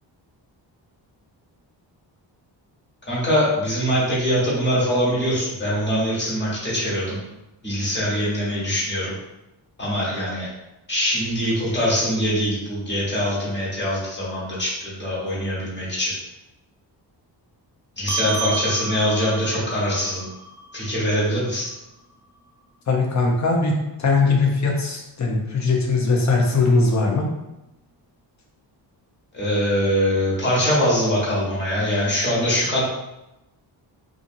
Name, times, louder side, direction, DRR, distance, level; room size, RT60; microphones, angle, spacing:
voice 1, 3.1-7.2 7.6-9.1 9.8-10.5 10.9-16.1 18.0-20.3 20.7-21.7 29.3-32.8, equal, 25° left, -8 dB, 1.3 m, -23 dB
sound 1, 18.1-22.9, right 4 dB, 5° right, 0.3 m, -33 dB
voice 2, 22.9-23.7 24.0-27.3, left 3 dB, 40° left, 0 dB, 0.6 m, -20 dB
2.6 x 2.5 x 2.6 m, 0.93 s
cardioid pair, 100°, 45 cm